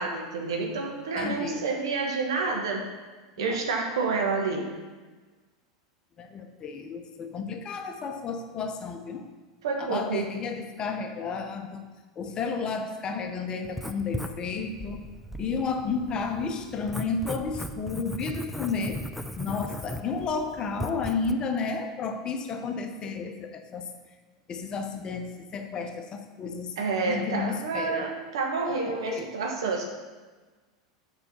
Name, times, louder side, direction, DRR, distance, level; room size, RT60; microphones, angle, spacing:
voice 1, 0.0-2.9 3.4-4.7 9.6-10.3 26.8-29.8, right 4 dB, 75° right, 1 dB, 1.4 m, -29 dB
voice 2, 1.2-1.7 3.4-3.6 6.2-9.2 9.8-11.9 12.2-15.1 15.4-19.0 19.4-23.9 24.5-26.8 27.0-28.1 28.7-29.3, left 5 dB, 35° left, 6 dB, 0.8 m, -32 dB
Writing, 13.6-21.3, equal, ahead, 0.5 m, -38 dB
6.7 x 4.8 x 5.8 m, 1.3 s
hypercardioid pair, 90°, 3 cm